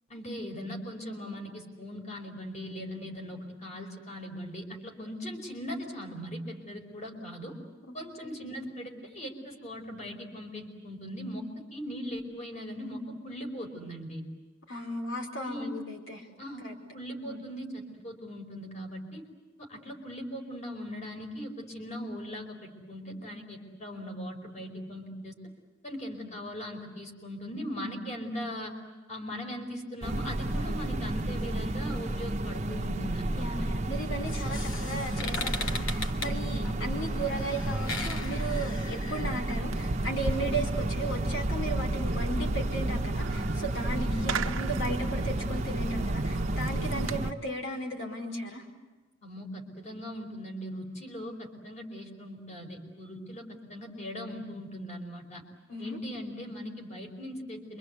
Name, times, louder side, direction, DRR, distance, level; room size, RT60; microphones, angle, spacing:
voice 1, 0.1-7.6 7.9-14.2 15.4-15.7 16.4-16.6 16.9-19.2 19.6-25.4 25.8-28.7 29.1-33.5 36.5-36.7 43.9-44.3 49.2-55.4 55.8-57.8, equal, 35° left, 2 dB, 4.9 m, -39 dB
voice 2, 14.7-16.3 16.6-16.7 17.2-17.4 33.3-48.6 55.7-56.0, right 1 dB, 70° left, 3 dB, 4.8 m, -36 dB
sound 1, 30.0-47.3, right 1 dB, 35° right, 0.9 m, -32 dB
sound 2, 34.0-39.6, left 3 dB, 85° left, 2.4 m, -38 dB
Fireworks, 39.7-47.2, right 2 dB, 90° right, 0.9 m, -34 dB
28.0 x 25.0 x 8.3 m, 1.2 s
head